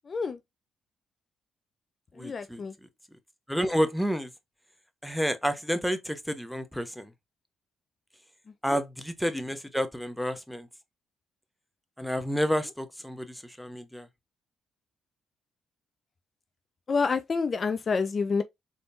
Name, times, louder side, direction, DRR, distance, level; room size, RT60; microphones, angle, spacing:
voice 1, 0.1-0.4 2.2-2.7 8.7-8.8 16.9-18.4, left 4 dB, 40° left, 0.4 m, -28 dB
voice 2, 2.2-2.6 3.5-4.3 5.0-7.1 8.6-10.7 12.0-14.1, equal, ahead, 0.8 m, -30 dB
4.1 x 3.5 x 2.4 m
cardioid pair, 90°, 0 cm